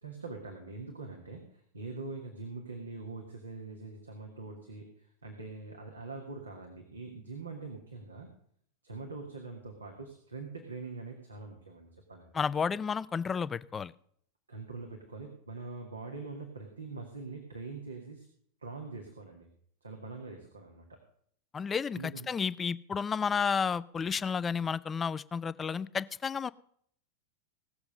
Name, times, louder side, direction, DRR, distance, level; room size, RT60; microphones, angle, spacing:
voice 1, 0.0-8.3 8.8-12.3 14.5-18.3 18.6-19.5 19.8-20.9 21.6-22.3, right 3 dB, 75° right, 2 dB, 1.9 m, -43 dB
voice 2, 12.3-13.9 21.5-22.0 22.3-26.5, left 6 dB, 20° left, 18 dB, 0.4 m, -31 dB
17.5 x 7.0 x 6.4 m, 0.64 s
figure-of-eight pair, 90°, 0 cm